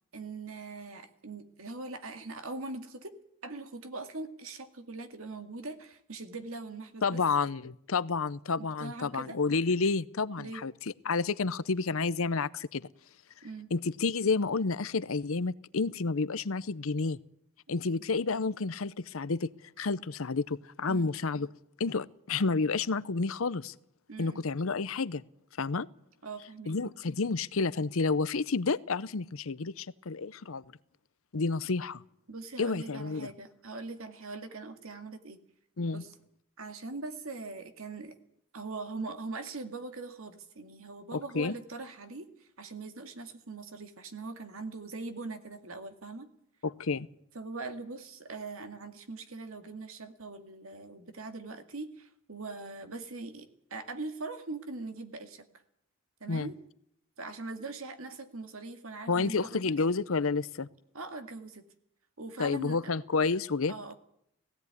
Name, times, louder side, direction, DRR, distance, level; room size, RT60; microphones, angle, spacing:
voice 1, 0.1-3.1 3.4-7.2 8.6-9.4 10.4-10.6 13.4-13.7 17.7-18.0 20.9-21.1 24.1-24.4 26.2-26.8 32.3-35.4 35.9-36.1 36.6-38.1 38.5-46.3 47.3-55.5 56.2-56.6 57.2-59.6 60.9-61.6 62.2-62.9 63.7-63.9, right 3 dB, 75° right, 7 dB, 2.1 m, -41 dB
voice 2, 7.0-10.7 11.0-12.9 13.7-17.2 17.7-19.5 19.8-21.5 21.8-23.8 24.2-25.2 25.6-25.9 26.7-30.6 31.3-32.0 32.6-33.3 35.8-36.0 41.1-41.5 46.6-47.1 56.3-56.5 59.1-60.7 62.4-63.7, left 4 dB, 75° left, 17 dB, 0.7 m, -30 dB
17.5 x 16.5 x 9.6 m, 0.72 s
head